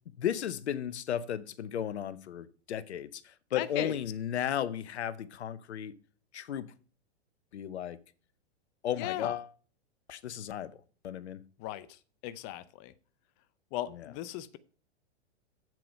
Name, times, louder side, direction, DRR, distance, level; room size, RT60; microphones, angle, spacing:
voice 1, 0.2-5.9 6.3-6.7 7.5-8.0 8.8-9.5 10.1-10.7 11.0-11.4 13.9-14.1, left 9 dB, 75° left, 0.8 m, -35 dB
voice 2, 3.6-4.0 9.0-9.3 11.6-11.9 12.2-12.9 13.7-14.6, left 14 dB, 35° left, 0.6 m, -36 dB
8.0 x 7.5 x 5.2 m
hypercardioid pair, 120°, 33 cm